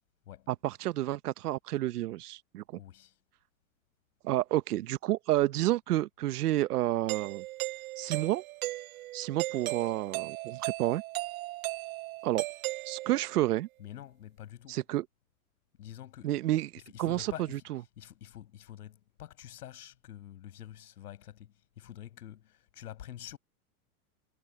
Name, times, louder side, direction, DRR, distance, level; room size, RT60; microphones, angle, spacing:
voice 1, 0.5-2.6 4.2-7.4 8.0-8.4 9.1-11.0 12.2-12.4 12.9-13.7 14.7-15.1 16.2-16.7 17.0-17.3 17.7-17.8, right 15 dB, 90° right, 1.0 m, -30 dB
voice 2, 2.8-3.2 13.8-14.8 15.8-16.4 16.9-17.6 18.0-23.4, left 11 dB, 90° left, 5.8 m, -47 dB
Doorbell, 7.1-13.4, right 18 dB, 65° right, 0.8 m, -37 dB
supercardioid pair, 140°, 45 cm